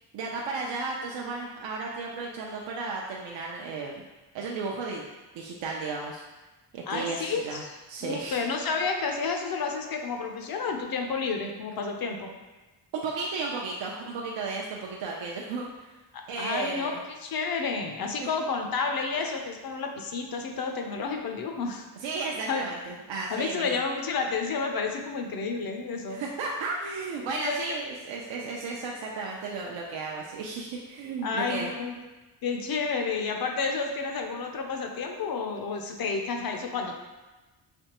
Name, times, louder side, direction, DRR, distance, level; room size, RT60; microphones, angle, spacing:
voice 1, 0.1-4.0 4.3-5.1 5.3-6.2 6.7-7.6 7.9-8.4 12.9-15.9 16.3-17.0 22.0-23.8 26.1-31.7, right 4 dB, 75° right, -2 dB, 0.5 m, -34 dB
voice 2, 6.9-7.7 8.0-12.3 16.4-16.9 17.2-21.9 22.5-22.7 23.3-26.2 27.3-27.8 31.2-31.9 32.4-37.0, left 4 dB, 55° left, 3 dB, 0.6 m, -30 dB
3.4 x 3.1 x 2.9 m, 1.1 s
cardioid pair, 100°, 45 cm